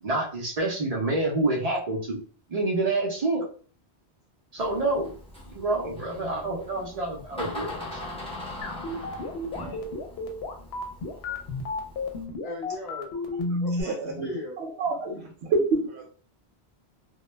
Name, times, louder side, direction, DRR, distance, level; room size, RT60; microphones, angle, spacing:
voice 1, 0.0-2.2 2.5-3.4 4.5-5.1 5.5-8.0, right 2 dB, 50° right, -2 dB, 0.5 m, -27 dB
Door, 4.6-12.2, left 1 dB, 5° left, 0.6 m, -41 dB
Retro Sci Fi Computer, 8.6-13.8, left 2 dB, 75° left, 0.8 m, -31 dB
voice 2, 12.4-13.1 13.6-14.6, left 2 dB, 40° left, -1 dB, 0.7 m, -39 dB
voice 3, 13.8-14.3 14.6-16.1, right 3 dB, 85° right, 0 dB, 0.8 m, -28 dB
2.1 x 2.0 x 3.1 m, 0.43 s
omnidirectional pair, 1.1 m